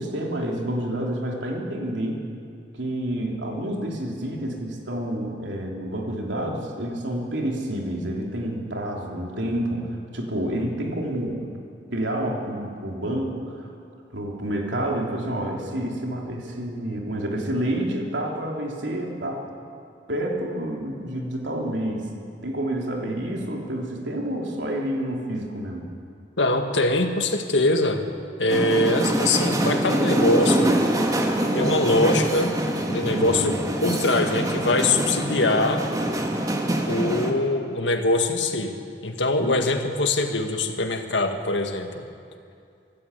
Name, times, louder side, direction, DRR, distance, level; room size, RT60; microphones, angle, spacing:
voice 1, 0.0-2.2 2.7-11.4 11.9-13.7 14.1-19.5 20.1-22.1 22.4-25.9 33.1-33.6 39.4-39.6, right 1 dB, 90° right, 0 dB, 3.2 m, -29 dB
voice 2, 26.4-28.0 28.4-30.8 31.5-32.6 32.9-35.8 36.9-38.8 39.0-42.0, left 2 dB, 85° left, 5 dB, 1.9 m, -23 dB
sound 1, 28.5-37.3, right 1 dB, 20° right, 1.9 m, -24 dB
25.0 x 13.0 x 8.5 m, 2.4 s
head